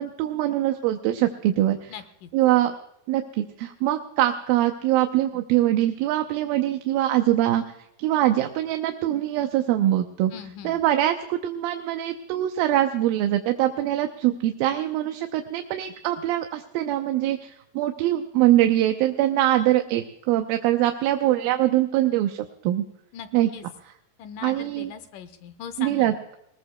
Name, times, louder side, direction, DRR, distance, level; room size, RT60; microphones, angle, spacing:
voice 1, 0.0-1.9 2.3-2.7 3.1-7.6 8.0-10.3 10.6-22.8 23.3-23.5 24.4-24.9 25.8-26.4, right 13 dB, 85° right, 6 dB, 2.6 m, -23 dB
voice 2, 1.9-2.3 10.3-10.8 23.1-23.7 24.2-26.1, left 8 dB, 75° left, 11 dB, 2.2 m, -40 dB
20.0 x 20.0 x 2.2 m, 0.79 s
omnidirectional pair, 4.1 m